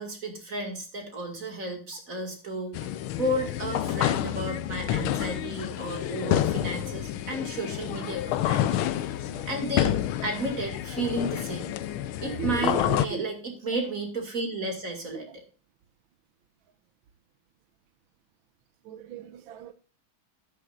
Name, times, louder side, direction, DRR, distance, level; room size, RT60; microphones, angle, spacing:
voice 1, 0.0-2.9 3.2-9.2 9.5-10.0 10.2-11.7 12.2-15.3, right 1 dB, 40° right, 2.7 m, -33 dB
sound 1, 2.7-13.1, left 12 dB, 85° left, 1.5 m, -29 dB
voice 2, 12.2-13.2 18.8-19.7, right 9 dB, 70° right, 1.5 m, -37 dB
12.0 x 10.5 x 2.5 m
omnidirectional pair, 2.3 m